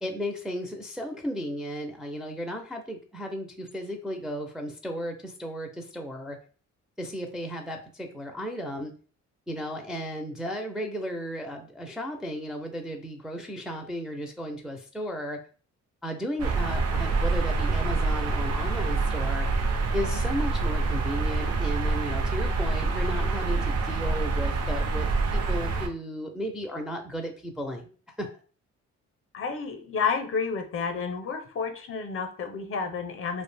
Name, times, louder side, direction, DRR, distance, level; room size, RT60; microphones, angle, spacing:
voice 1, 0.0-6.4 7.0-8.9 9.5-15.4 16.0-19.5 19.9-28.3, equal, ahead, 2 dB, 0.4 m, -34 dB
sound 1, 16.4-25.9, right 3 dB, 55° right, 0.6 m, -26 dB
voice 2, 29.3-33.4, left 5 dB, 45° left, 6 dB, 0.5 m, -30 dB
2.4 x 2.1 x 3.2 m, 0.40 s
cardioid pair, 90°, 30 cm